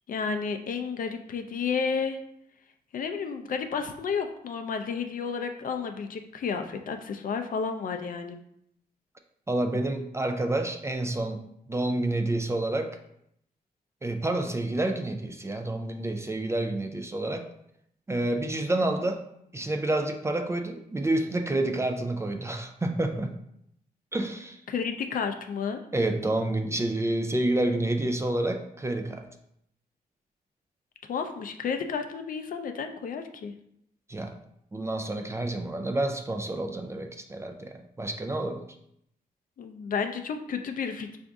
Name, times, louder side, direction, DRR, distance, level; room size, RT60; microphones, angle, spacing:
voice 1, 0.1-2.2 2.9-8.4 24.7-25.8 31.1-33.5 39.6-41.2, left 5 dB, 60° left, 6 dB, 0.4 m, -31 dB
voice 2, 9.5-11.4 11.7-12.9 14.0-17.5 18.1-19.2 19.5-23.3 24.1-24.6 25.9-29.3 34.1-34.4 34.7-38.7, right 1 dB, 15° right, 4 dB, 0.3 m, -29 dB
4.8 x 2.6 x 3.5 m, 0.74 s
wide cardioid pair, 130°, 16 cm